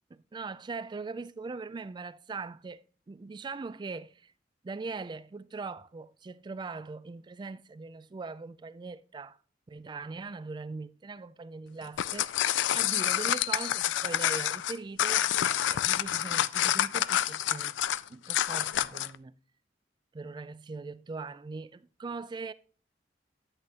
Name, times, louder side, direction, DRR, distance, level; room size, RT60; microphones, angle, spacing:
voice 1, 0.1-4.3 4.6-9.4 9.7-12.3 12.7-15.3 15.7-17.8 18.1-19.4 20.1-22.5, right 4 dB, 25° right, 0.3 m, -41 dB
sound 1, 11.8-19.2, left 11 dB, 75° left, 0.3 m, -28 dB
10.5 x 8.2 x 2.9 m
head